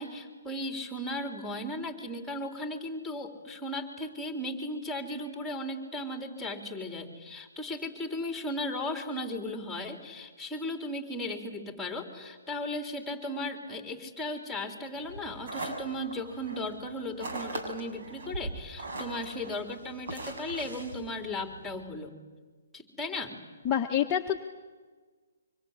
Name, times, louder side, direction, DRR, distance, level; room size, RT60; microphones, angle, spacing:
voice 1, 0.0-22.1 22.7-23.4, left 1 dB, ahead, 4 dB, 3.7 m, -36 dB
sound 1, 15.0-21.8, right 2 dB, 55° right, 6.7 m, -40 dB
voice 2, 23.6-24.4, left 9 dB, 20° left, 1 dB, 1.4 m, -27 dB
25.0 x 24.5 x 9.9 m, 1.4 s
figure-of-eight pair, 140°, 0 cm